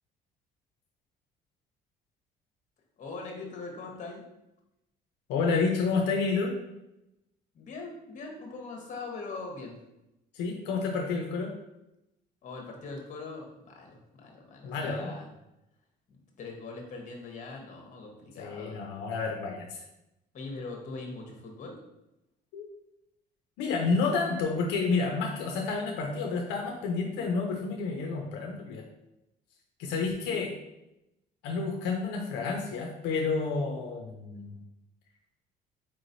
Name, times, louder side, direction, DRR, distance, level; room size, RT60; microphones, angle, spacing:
voice 1, 3.0-4.2 7.5-9.8 12.4-15.2 16.4-18.8 20.3-21.8, left 3 dB, 45° left, 0 dB, 1.1 m, -41 dB
voice 2, 5.3-6.5 10.3-11.5 14.6-15.1 18.4-19.8 22.5-22.7 23.6-28.8 29.8-30.6 31.4-34.6, left 4 dB, 90° left, 1 dB, 0.5 m, -30 dB
4.4 x 3.0 x 2.6 m, 0.90 s
cardioid pair, 110°, 17 cm